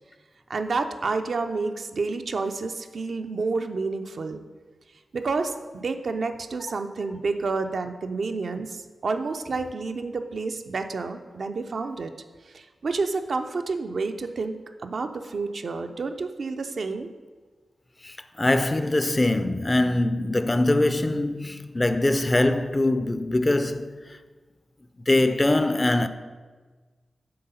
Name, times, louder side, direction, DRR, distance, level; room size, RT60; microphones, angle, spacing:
voice 1, 0.5-4.4 5.1-12.1 12.5-14.6 14.8-17.1, right 4 dB, 70° right, 0.4 m, -29 dB
voice 2, 18.0-24.0 25.0-26.1, left 2 dB, 30° left, 0.4 m, -23 dB
7.7 x 3.8 x 5.6 m
cardioid pair, 55°, 0 cm